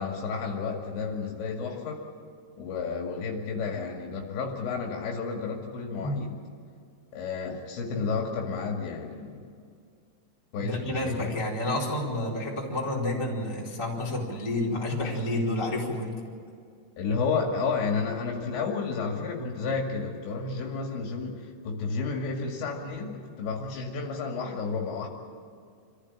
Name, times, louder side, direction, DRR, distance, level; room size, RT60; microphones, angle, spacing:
voice 1, 0.0-2.1 2.6-6.4 7.1-9.4 10.5-11.3 17.0-25.1, left 4 dB, 65° left, 1 dB, 4.3 m, -31 dB
voice 2, 10.6-16.2, left 1 dB, 5° left, -4 dB, 3.7 m, -30 dB
26.5 x 15.0 x 8.9 m, 2.3 s
omnidirectional pair, 5.7 m